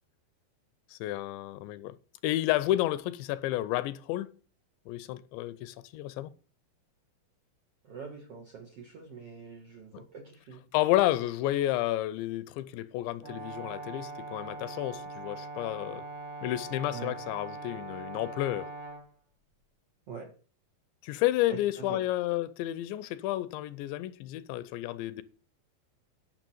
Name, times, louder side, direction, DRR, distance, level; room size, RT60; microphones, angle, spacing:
voice 1, 0.9-2.0 2.2-4.3 4.9-6.3 9.9-10.0 10.7-16.0 16.4-18.7 21.0-25.2, left 15 dB, 90° left, 2.9 m, -31 dB
voice 2, 7.9-10.6 16.9-17.1 20.1-20.3 21.5-21.6 21.9-22.0, right 5 dB, 55° right, 1.7 m, -44 dB
Brass instrument, 13.2-19.0, right 3 dB, 40° right, 4.5 m, -41 dB
10.5 x 6.1 x 7.7 m
omnidirectional pair, 5.0 m